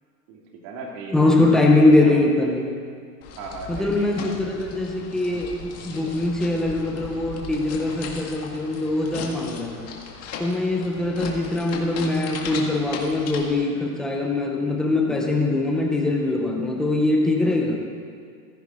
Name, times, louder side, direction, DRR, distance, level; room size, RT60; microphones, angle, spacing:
voice 1, 0.3-2.1 3.4-4.3 5.8-6.2, right 3 dB, 45° right, -1 dB, 3.1 m, -37 dB
voice 2, 1.1-2.7 3.7-9.9 10.4-17.8, left 2 dB, ahead, 0 dB, 0.3 m, -22 dB
sound 1, 3.2-13.5, left 5 dB, 30° left, 2.0 m, -37 dB
15.5 x 14.0 x 4.0 m, 2.2 s
hypercardioid pair, 125°, 48 cm